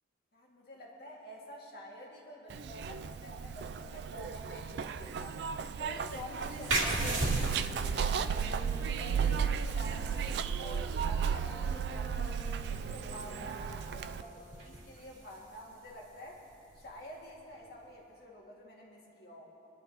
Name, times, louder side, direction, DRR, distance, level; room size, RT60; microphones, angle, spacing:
voice 1, 0.3-5.4 5.7-8.6 9.0-16.4 16.7-19.5, equal, 55° left, -4 dB, 2.1 m, -48 dB
Zipper (clothing), 2.5-14.2, right 7 dB, 55° right, 0.3 m, -34 dB
sound 1, 6.7-18.0, right 2 dB, 85° right, 2.4 m, -40 dB
Wind instrument woodwind instrument, 6.8-14.9, left 1 dB, 35° right, 2.6 m, -50 dB
23.0 x 11.5 x 2.9 m, 2.7 s
head